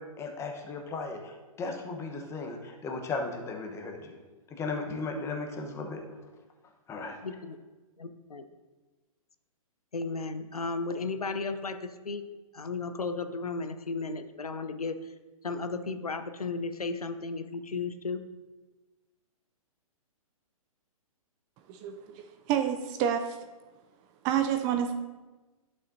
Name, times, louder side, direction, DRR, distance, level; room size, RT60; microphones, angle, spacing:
voice 1, 0.2-4.2 4.5-6.0 6.9-7.2, left 3 dB, 15° left, 3 dB, 1.0 m, -36 dB
voice 2, 7.2-7.6 8.0-8.4 9.9-12.2 12.5-15.1 15.4-18.3, left 4 dB, 85° left, 9 dB, 0.7 m, -34 dB
voice 3, 21.7-23.4 24.2-24.9, right 9 dB, 20° right, 8 dB, 0.3 m, -29 dB
11.0 x 6.6 x 2.7 m, 1.2 s
figure-of-eight pair, 125°, 18 cm